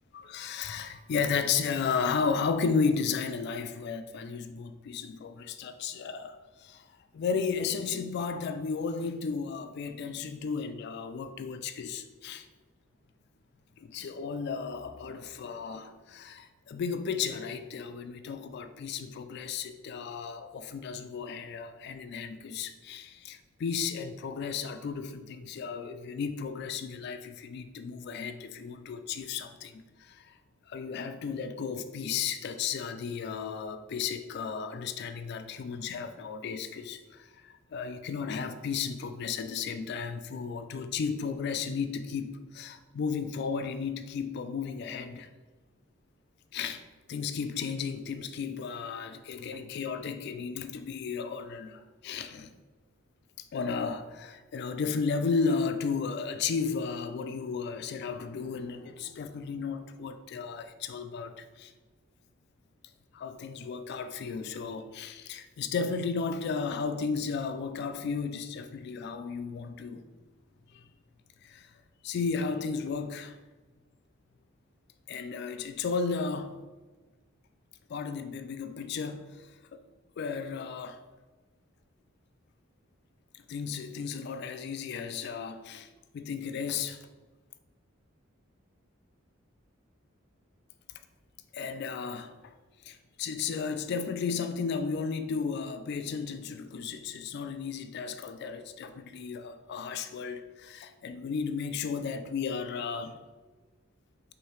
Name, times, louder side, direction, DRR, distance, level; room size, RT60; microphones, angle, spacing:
voice 1, 0.1-6.8 7.1-12.5 13.8-30.3 30.7-45.3 46.5-46.8 47.1-52.5 53.5-61.7 63.1-70.0 70.7-70.8 71.4-71.7 72.0-73.4 75.1-76.6 77.9-79.8 80.2-81.0 83.5-85.9 86.1-87.0 91.5-92.5 92.8-103.2, left 5 dB, 55° left, 0.3 m, -34 dB
4.7 x 2.7 x 3.1 m
head